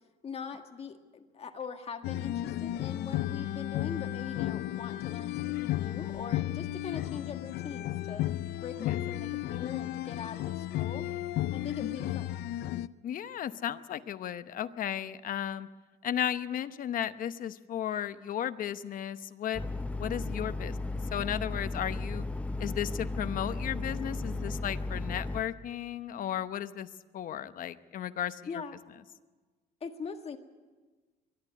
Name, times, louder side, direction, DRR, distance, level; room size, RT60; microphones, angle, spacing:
voice 1, 0.2-8.3 8.6-11.1 11.5-12.3 28.5-28.8 29.8-30.4, left 6 dB, 35° left, 5 dB, 1.8 m, -42 dB
sound 1, 2.0-12.9, left 14 dB, 75° left, 0.6 m, -34 dB
voice 2, 13.0-15.7 16.0-19.6 20.0-20.8 21.1-22.2 22.6-28.4, left 10 dB, 55° left, 12 dB, 0.9 m, -34 dB
sound 2, 19.5-25.4, left 2 dB, 10° left, 0.9 m, -35 dB
23.5 x 11.5 x 9.7 m, 1.3 s
cardioid pair, 110°, 17 cm